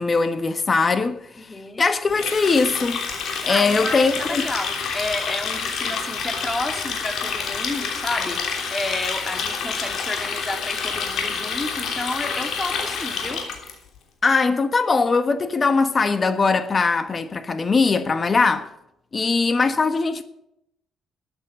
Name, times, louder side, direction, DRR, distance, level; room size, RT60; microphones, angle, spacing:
voice 1, 0.0-1.5 1.8-3.1 3.4-4.5 14.2-18.7 19.1-20.2, left 4 dB, 35° left, 1.3 m, -21 dB
voice 2, 1.5-1.9 3.5-13.4, left 2 dB, 20° left, 2.3 m, -31 dB
Water tap faucet, 2.1-13.7, left 5 dB, 70° left, 3.2 m, -28 dB
13.0 x 8.8 x 7.6 m
cardioid pair, 90°, 0 cm